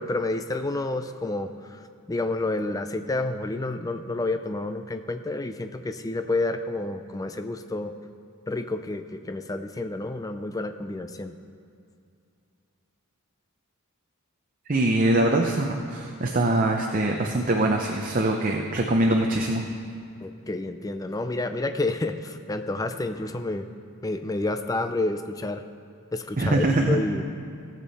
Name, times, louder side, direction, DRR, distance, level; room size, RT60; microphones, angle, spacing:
voice 1, 0.0-1.8 2.1-7.9 8.5-11.3 20.2-23.7 24.0-25.6 26.1-27.2, left 2 dB, 15° left, 8 dB, 0.4 m, -29 dB
voice 2, 14.7-19.6 26.4-27.0, right 1 dB, 35° right, 1 dB, 0.6 m, -23 dB
17.0 x 7.5 x 4.1 m, 2.4 s
head